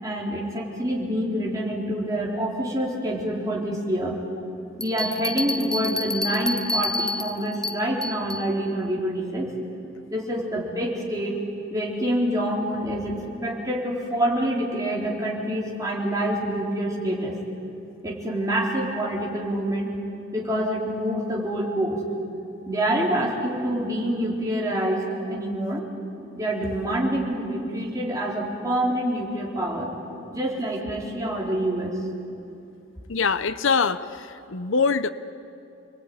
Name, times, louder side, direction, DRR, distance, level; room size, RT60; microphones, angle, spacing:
voice 1, 0.0-4.2 4.8-9.5 10.1-11.4 11.7-17.3 18.0-20.0 20.3-22.0 22.7-25.8 26.4-29.9 30.3-32.0, right 1 dB, 20° right, -3 dB, 4.3 m, -26 dB
sound 1, 4.8-8.5, left 1 dB, 5° left, 0.7 m, -29 dB
voice 2, 33.1-35.1, left 5 dB, 80° left, 13 dB, 0.8 m, -23 dB
29.0 x 21.5 x 9.6 m, 2.7 s
head